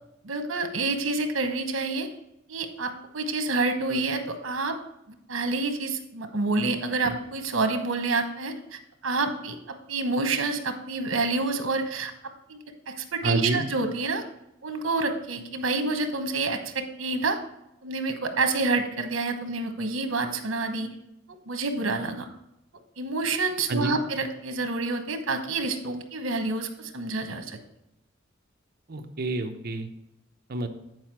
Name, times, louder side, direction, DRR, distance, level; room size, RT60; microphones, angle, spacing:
voice 1, 0.2-2.1 2.5-4.8 5.1-12.1 12.5-12.6 12.9-14.2 14.6-17.4 17.8-20.9 21.5-22.3 23.0-27.6, right 3 dB, 80° right, 7 dB, 1.0 m, -28 dB
voice 2, 13.2-13.6 23.7-24.0 28.9-29.9 30.5-30.7, right 2 dB, 50° right, 5 dB, 0.8 m, -28 dB
9.3 x 4.8 x 4.6 m, 0.85 s
head